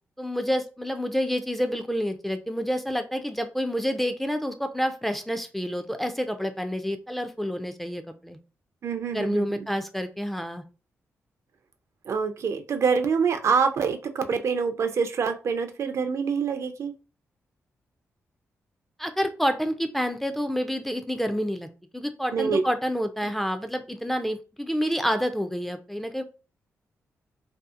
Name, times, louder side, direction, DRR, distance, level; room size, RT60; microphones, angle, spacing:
voice 1, 0.2-8.4 9.1-10.6 19.0-21.7 21.9-26.2, equal, 5° left, 8 dB, 0.3 m, -28 dB
voice 2, 8.8-9.6 12.1-16.9 22.3-22.6, right 5 dB, 60° right, 8 dB, 0.4 m, -26 dB
2.7 x 2.4 x 2.4 m, 0.33 s
cardioid pair, 75°, 5 cm